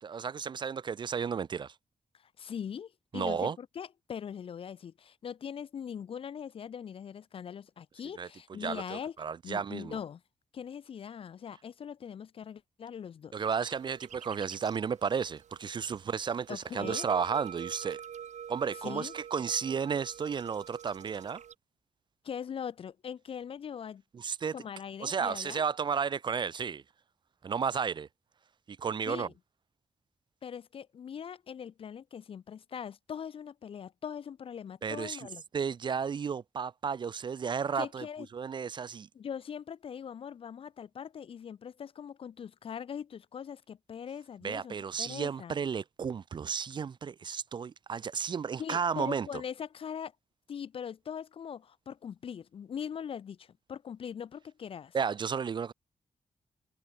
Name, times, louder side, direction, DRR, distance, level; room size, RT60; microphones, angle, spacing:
voice 1, 0.0-1.7 3.1-3.6 8.2-8.3 8.6-10.0 13.3-18.0 18.5-21.4 24.1-24.5 25.0-26.8 27.4-28.1 28.7-29.3 34.8-35.3 35.5-38.1 38.3-39.1 44.4-49.4 54.9-55.7, right 6 dB, 40° right, 0.4 m, -33 dB
voice 2, 2.2-9.1 9.4-10.2 10.5-13.4 16.5-17.1 18.8-19.1 22.2-24.0 24.5-25.6 29.1-29.3 30.4-35.4 37.7-38.3 39.1-45.6 48.6-50.1 50.5-55.0, left 8 dB, 45° left, 0.4 m, -41 dB
sound 1, 13.4-21.5, right 9 dB, 70° right, 1.7 m, -46 dB
wide cardioid pair, 160°, 13 cm